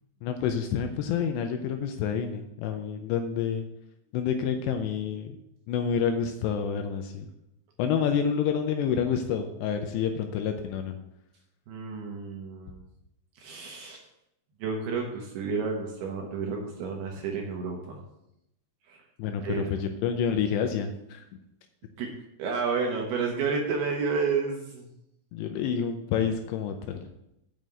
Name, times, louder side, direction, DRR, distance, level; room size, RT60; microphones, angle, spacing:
voice 1, 0.2-3.7 4.1-5.4 5.7-7.3 7.8-11.0 19.2-21.2 25.3-27.1, left 7 dB, 80° left, 6 dB, 2.7 m, -28 dB
voice 2, 11.7-12.8 13.4-14.0 14.6-18.0 18.9-19.0 19.4-19.7 22.0-22.1 22.4-24.9, right 5 dB, 70° right, 1 dB, 2.6 m, -31 dB
7.2 x 6.3 x 7.8 m, 0.84 s
omnidirectional pair, 5.5 m